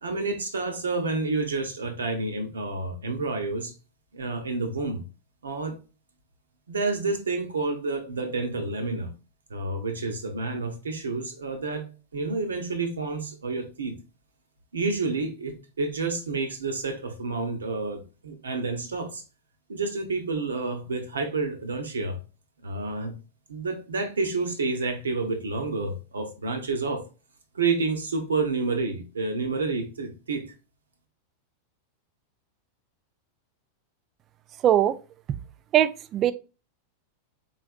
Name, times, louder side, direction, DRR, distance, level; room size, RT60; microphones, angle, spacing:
voice 1, 0.0-3.7 4.1-5.0 5.4-5.8 6.7-9.1 9.5-11.9 12.1-14.0 14.7-19.2 19.7-22.2 22.6-23.1 23.5-27.0 27.5-30.5, right 3 dB, 70° right, 0.8 m, -29 dB
voice 2, 34.6-34.9 35.7-36.3, right 11 dB, 30° right, 0.3 m, -20 dB
4.0 x 4.0 x 2.3 m
figure-of-eight pair, 90°, 0 cm